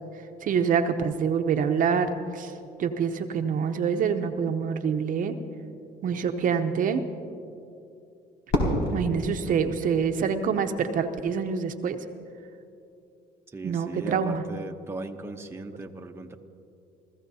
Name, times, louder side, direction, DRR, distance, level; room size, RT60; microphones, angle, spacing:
voice 1, 0.4-2.5 2.8-5.4 6.0-7.0 8.9-12.0 13.6-14.4, right 6 dB, 55° right, 7 dB, 0.8 m, -26 dB
Fireworks, 8.5-10.7, left 1 dB, 80° left, 3.8 m, -29 dB
voice 2, 13.5-16.4, right 3 dB, 15° right, 4 dB, 0.8 m, -37 dB
28.5 x 15.0 x 2.8 m, 2.6 s
cardioid pair, 110°, 17 cm